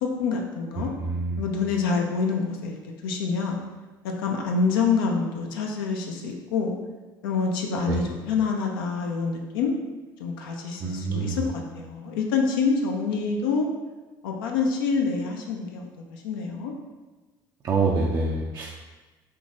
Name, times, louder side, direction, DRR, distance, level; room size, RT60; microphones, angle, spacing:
voice 1, 0.0-0.9 1.4-2.8 3.0-3.6 4.0-6.7 7.2-9.7 10.2-13.7 14.2-16.7, left 5 dB, 75° left, 1 dB, 0.4 m, -26 dB
voice 2, 0.8-1.4 7.9-8.0 10.8-11.4 17.6-18.7, right 3 dB, 35° right, -2 dB, 0.4 m, -26 dB
3.6 x 2.6 x 2.5 m, 1.2 s
hypercardioid pair, 60°, 12 cm